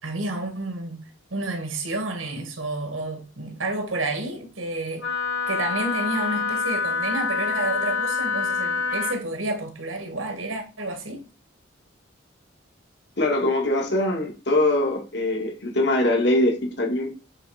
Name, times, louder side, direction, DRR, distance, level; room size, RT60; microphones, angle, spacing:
voice 1, 0.0-1.0 1.3-5.1 5.5-11.3, right 2 dB, 85° right, 2.1 m, -30 dB
Wind instrument woodwind instrument, 5.0-9.2, left 5 dB, 85° left, 5.0 m, -26 dB
voice 2, 13.2-17.1, left 1 dB, 55° left, 2.1 m, -22 dB
8.7 x 3.9 x 5.0 m
head